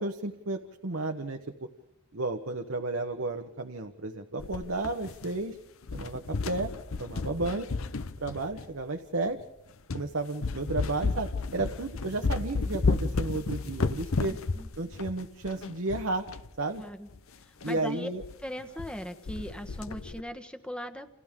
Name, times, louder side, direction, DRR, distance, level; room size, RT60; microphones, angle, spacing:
voice 1, 0.0-1.4 2.1-5.6 5.9-6.7 7.0-7.7 8.2-9.4 9.9-14.4 14.8-16.3 16.6-16.8 17.6-18.2, right 2 dB, 65° right, 5 dB, 1.1 m, -32 dB
sound 1, 4.4-5.5 5.8-8.8 9.4-9.5 9.9-10.1 10.4-16.5 16.7-16.8 17.1-17.2 17.6-17.8 18.2-18.3 18.6-19.0 19.3-20.2, left 3 dB, 70° left, 0.8 m, -32 dB
voice 2, 14.3-14.7 16.8-17.1 17.4-18.1 18.4-21.1, equal, 5° left, 8 dB, 1.2 m, -39 dB
29.0 x 28.5 x 3.7 m, 0.89 s
head